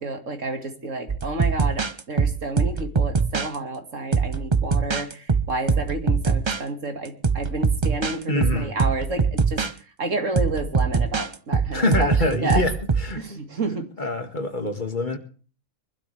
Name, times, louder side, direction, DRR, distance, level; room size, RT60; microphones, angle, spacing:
voice 1, 0.0-12.7 13.2-13.9, right 2 dB, 60° right, 2.5 m, -30 dB
sound 1, 1.1-3.6 4.1-6.6 7.1-9.7 10.4-13.1, right 5 dB, 30° right, 0.5 m, -23 dB
voice 2, 8.3-8.7 11.7-12.7 13.0-13.4 14.0-15.2, left 2 dB, 35° left, 2.2 m, -25 dB
24.0 x 12.5 x 3.4 m
omnidirectional pair, 1.5 m